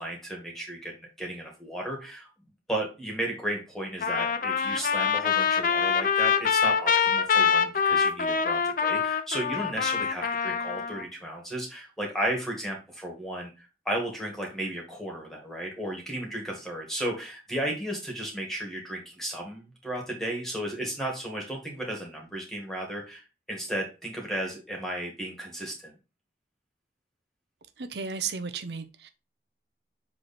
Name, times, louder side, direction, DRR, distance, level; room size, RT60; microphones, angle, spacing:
voice 1, 0.0-2.3 2.7-25.9, right 1 dB, ahead, 1.9 m, -34 dB
Trumpet, 4.0-11.0, left 6 dB, 50° left, 0.5 m, -25 dB
voice 2, 27.8-29.1, right 5 dB, 75° right, 0.6 m, -34 dB
7.6 x 3.2 x 4.3 m
head